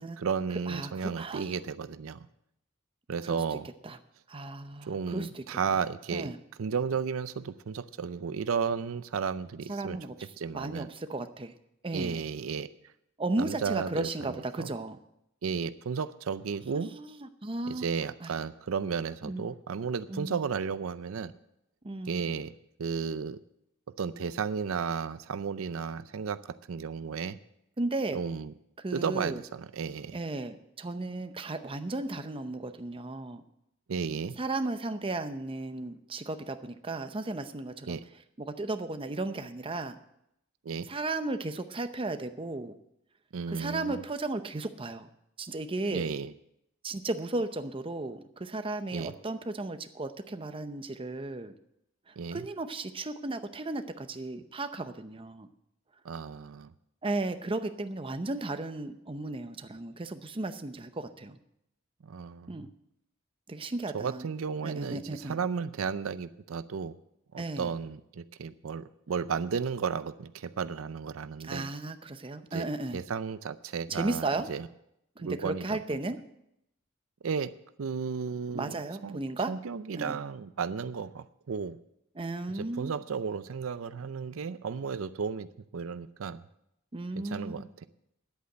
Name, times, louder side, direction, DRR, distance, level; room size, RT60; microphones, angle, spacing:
voice 1, 0.2-2.3 3.1-3.7 4.9-6.3 6.6-10.0 10.4-10.9 11.9-12.7 13.4-14.1 14.6-14.7 15.4-16.9 17.7-21.3 22.1-22.5 22.8-23.4 24.0-27.4 28.1-28.5 28.9-30.2 33.9-34.4 37.9-38.0 40.7-40.9 43.3-44.0 45.9-46.3 48.9-49.1 52.2-52.4 56.0-56.7 62.0-62.7 63.9-67.0 67.3-71.7 72.5-72.7 72.9-74.7 75.2-75.8 77.2-77.5 77.8-78.7 79.0-79.2 79.5-81.8 82.5-85.5 85.7-86.4 87.2-87.9, right 6 dB, 90° right, 14 dB, 0.5 m, -33 dB
voice 2, 0.7-1.6 3.2-3.4 3.8-4.0 4.3-5.6 6.1-6.4 9.7-10.3 10.5-11.5 11.8-12.2 13.2-15.0 16.7-17.9 18.2-18.4 19.2-19.4 20.1-20.4 21.8-22.2 27.8-28.2 28.8-29.4 30.1-33.4 34.4-38.0 38.4-40.0 40.8-42.8 43.5-45.1 45.4-46.1 46.8-51.5 52.1-55.5 57.0-61.4 62.5-62.7 63.5-64.3 64.6-65.4 67.4-67.7 71.4-73.0 73.9-74.5 75.2-76.2 78.5-79.5 79.9-80.2 82.1-82.9 86.9-87.5, right 2 dB, 25° right, 9 dB, 0.7 m, -35 dB
10.5 x 8.4 x 7.8 m, 0.80 s
head